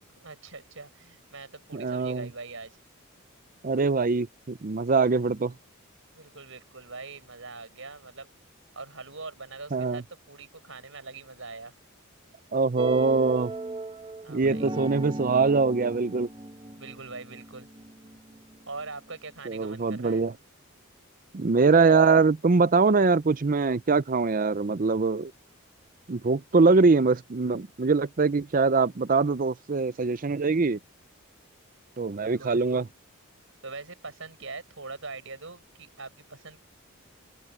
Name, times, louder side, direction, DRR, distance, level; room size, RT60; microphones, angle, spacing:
voice 1, 0.2-2.8 6.1-8.3 8.8-11.7 14.2-14.7 16.8-17.7 18.7-20.3 32.2-32.8 33.6-36.6, right 3 dB, 65° right, 7.2 m, -42 dB
voice 2, 1.7-2.3 3.6-5.5 9.7-10.0 12.5-13.5 14.3-16.3 19.5-20.3 21.3-25.3 26.1-30.8 32.0-32.9, right 4 dB, 40° right, 0.5 m, -23 dB
sound 1, 12.8-18.9, right 2 dB, 25° right, 1.1 m, -37 dB
open air
head